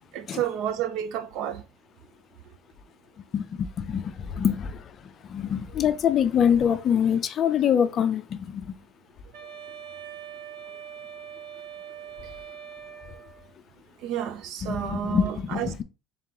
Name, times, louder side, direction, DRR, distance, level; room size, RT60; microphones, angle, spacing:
voice 1, 0.1-1.7 14.0-15.8, right 10 dB, 60° right, 0.5 m, -30 dB
voice 2, 3.3-4.8 5.3-8.7 14.6-15.8, left 8 dB, 35° left, 0.4 m, -25 dB
Wind instrument woodwind instrument, 9.3-13.5, right 8 dB, 85° right, 0.9 m, -42 dB
3.7 x 2.9 x 3.7 m
cardioid pair, 155°, 0 cm